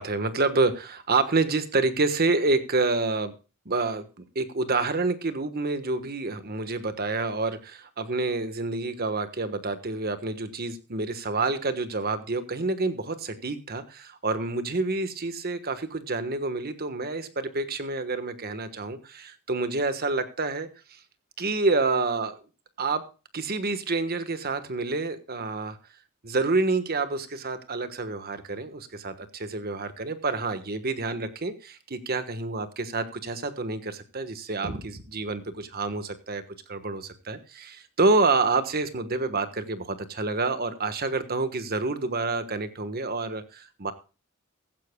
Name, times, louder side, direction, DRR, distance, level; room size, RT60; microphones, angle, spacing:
voice 1, 0.0-3.3 3.6-20.7 21.4-22.3 22.8-23.0 23.3-25.8 26.2-36.4 36.7-43.9, right 3 dB, 45° right, 10 dB, 1.4 m, -28 dB
15.0 x 15.0 x 2.3 m, 0.32 s
head